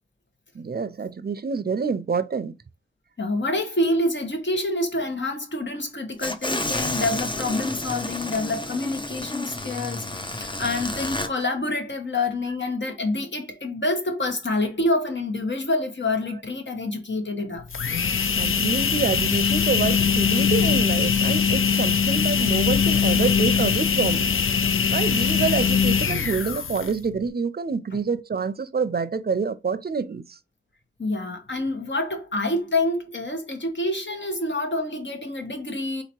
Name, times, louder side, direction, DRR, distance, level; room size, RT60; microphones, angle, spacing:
voice 1, 0.5-2.5 18.4-24.4 24.9-30.4, right 5 dB, 50° right, 0.5 m, -27 dB
voice 2, 3.2-17.6 25.3-25.4 27.9-28.0 31.0-36.0, left 2 dB, 65° left, 1.3 m, -27 dB
sound 1, 6.2-11.3, left 2 dB, 25° left, 0.6 m, -30 dB
sound 2, 17.6-27.1, left 6 dB, 85° left, 0.5 m, -22 dB
4.1 x 2.9 x 4.4 m
wide cardioid pair, 55°, 20 cm